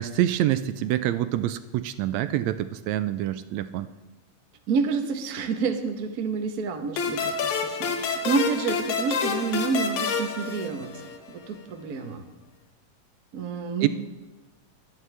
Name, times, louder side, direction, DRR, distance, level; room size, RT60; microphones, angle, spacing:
voice 1, 0.0-3.9 13.8-13.9, right 13 dB, 80° right, 12 dB, 1.7 m, -26 dB
voice 2, 4.7-11.0 11.3-12.2 13.3-13.9, right 5 dB, 60° right, 5 dB, 0.9 m, -29 dB
sound 1, 7.0-11.3, left 5 dB, 80° left, 2.5 m, -28 dB
23.0 x 9.5 x 3.4 m, 1.2 s
omnidirectional pair, 3.3 m